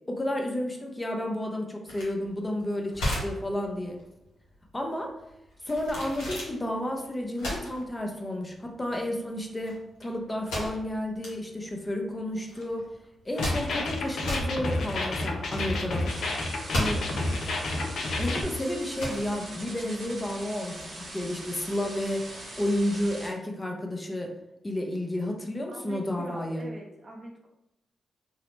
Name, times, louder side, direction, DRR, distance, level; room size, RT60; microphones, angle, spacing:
voice 1, 0.1-4.0 4.7-5.1 5.6-12.8 13.3-16.1 16.7-17.1 18.2-24.3 24.6-26.7, left 1 dB, 25° left, 2 dB, 0.6 m, -31 dB
sound 1, 1.9-20.4, left 1 dB, 85° left, 0.8 m, -36 dB
sound 2, 13.4-18.4, left 2 dB, 70° left, 0.4 m, -30 dB
sound 3, 16.1-23.3, right 1 dB, 70° right, 1.1 m, -42 dB
voice 2, 25.7-27.5, right 1 dB, 50° right, 1 dB, 0.5 m, -43 dB
2.7 x 2.0 x 3.1 m, 0.88 s
supercardioid pair, 45°, 0 cm